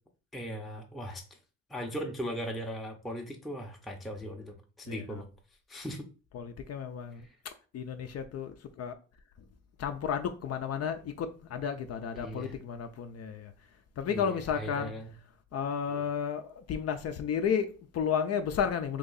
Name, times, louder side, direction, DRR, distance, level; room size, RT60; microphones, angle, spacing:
voice 1, 0.3-1.2 1.7-5.3 5.7-6.1 12.1-12.6 14.1-15.1 15.9-16.0, equal, ahead, 0.6 m, -38 dB
voice 2, 4.9-5.2 6.3-7.2 7.7-8.9 9.8-13.5 14.0-14.9 15.5-19.0, left 7 dB, 55° left, 0.5 m, -32 dB
3.0 x 2.7 x 3.9 m
cardioid pair, 90°, 30 cm